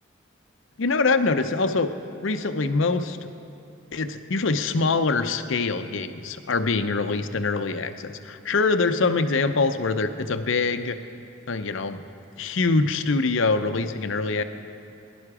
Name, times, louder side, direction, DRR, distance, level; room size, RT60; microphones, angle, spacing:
voice 1, 0.8-1.9 2.2-3.2 3.9-11.0 11.5-12.0 12.4-14.4, left 3 dB, 65° left, 10 dB, 0.7 m, -24 dB
21.5 x 11.0 x 4.9 m, 2.8 s
head